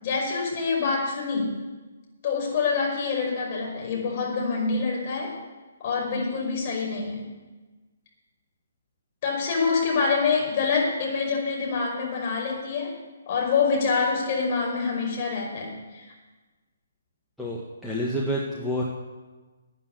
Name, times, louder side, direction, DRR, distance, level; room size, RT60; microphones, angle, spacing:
voice 1, 0.0-1.6 2.2-5.3 5.8-7.3 9.2-12.9 13.3-16.1, left 4 dB, 35° left, -1 dB, 5.5 m, -26 dB
voice 2, 17.4-18.8, equal, ahead, -6 dB, 1.8 m, -28 dB
13.5 x 8.9 x 9.8 m, 1.3 s
figure-of-eight pair, 135°, 0 cm